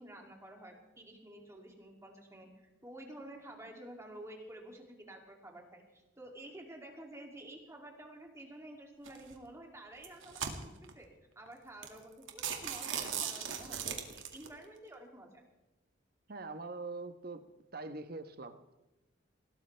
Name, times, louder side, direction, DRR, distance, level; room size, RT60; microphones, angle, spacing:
voice 1, 0.0-11.1 11.4-15.4, right 1 dB, 15° right, 1 dB, 2.7 m, -51 dB
sound 1, 9.0-9.3 9.9-10.9 11.5-11.6 11.8-12.0 12.3-14.5, right 8 dB, 85° right, 2.0 m, -38 dB
voice 2, 16.3-17.4 17.7-18.7, right 3 dB, 50° right, 9 dB, 1.1 m, -43 dB
20.5 x 18.0 x 3.4 m, 1.0 s
head